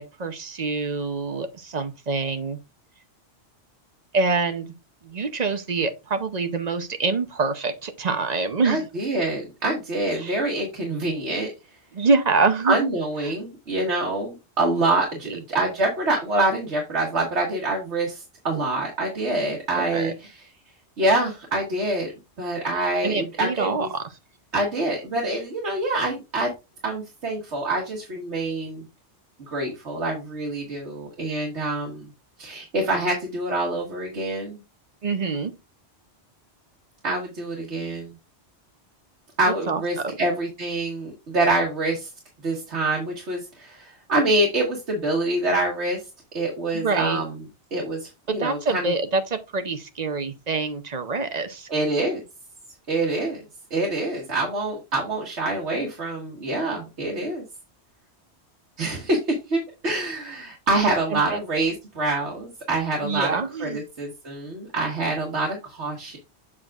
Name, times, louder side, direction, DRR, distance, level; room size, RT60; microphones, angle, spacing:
voice 1, 0.0-2.6 4.1-4.7 5.0-8.8 10.2-10.4 11.9-12.9 13.2-13.3 15.3-15.4 19.7-20.1 23.0-24.0 35.0-35.5 39.7-40.1 46.7-47.2 48.3-51.7 61.1-61.4 63.0-63.8, right 4 dB, 40° right, 0.8 m, -25 dB
voice 2, 8.6-11.5 12.6-20.4 21.0-22.1 22.4-23.9 24.5-26.5 26.8-28.8 29.5-32.1 32.4-34.6 37.0-38.1 39.4-42.1 42.4-46.0 46.3-47.4 47.7-48.9 51.7-52.2 52.9-53.4 53.7-57.4 58.8-66.2, right 2 dB, 80° right, 1.8 m, -26 dB
7.4 x 6.2 x 2.4 m
omnidirectional pair, 1.1 m